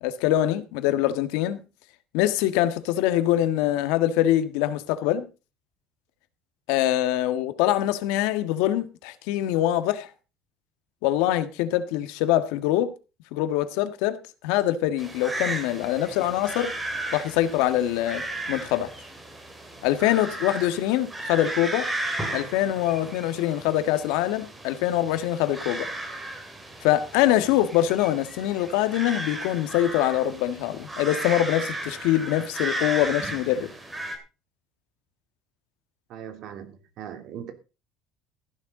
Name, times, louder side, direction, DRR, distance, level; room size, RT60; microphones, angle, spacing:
voice 1, 0.0-1.6 2.1-5.3 6.7-10.1 11.0-12.9 13.3-16.7 17.1-18.9 19.8-21.8 22.3-25.9 26.8-33.7, left 13 dB, 80° left, 1.7 m, -24 dB
sound 1, 15.0-34.2, right 1 dB, 10° right, 3.0 m, -35 dB
voice 2, 36.1-37.5, right 9 dB, 45° right, 3.1 m, -39 dB
15.0 x 11.5 x 3.9 m
cardioid pair, 170°, 0 cm